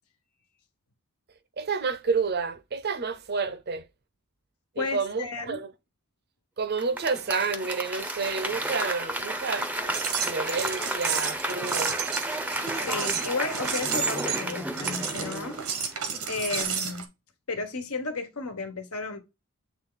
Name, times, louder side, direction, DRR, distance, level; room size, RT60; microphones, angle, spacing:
voice 1, 1.6-3.8 4.8-5.7 6.6-9.7 10.0-12.0, right 4 dB, 50° right, 0.7 m, -30 dB
voice 2, 4.8-5.6 12.9-15.6 16.3-17.1 17.5-19.2, left 4 dB, 80° left, 1.3 m, -33 dB
Applause / Crowd, 6.8-16.2 16.6-16.7, right 1 dB, 5° right, 0.6 m, -32 dB
sound 1, 9.7-17.0, right 7 dB, 90° right, 1.3 m, -32 dB
8.1 x 3.4 x 4.0 m
head